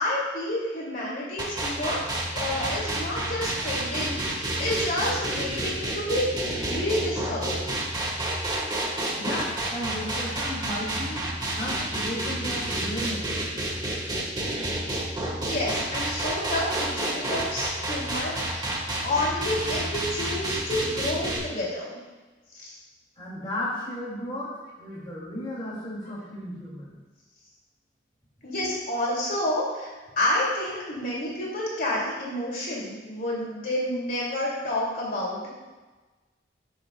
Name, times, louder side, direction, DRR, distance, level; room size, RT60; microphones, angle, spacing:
voice 1, 0.0-2.0 2.3-7.7 15.3-22.0 22.5-22.8 28.4-35.5, left 1 dB, 50° left, -5 dB, 2.5 m, -29 dB
sound 1, 1.4-21.4, right 1 dB, 20° right, 1.4 m, -29 dB
voice 2, 9.2-11.2 11.5-13.3 23.2-24.5 24.8-27.0, left 1 dB, 25° left, -7 dB, 2.4 m, -34 dB
13.5 x 7.1 x 2.3 m, 1.2 s
head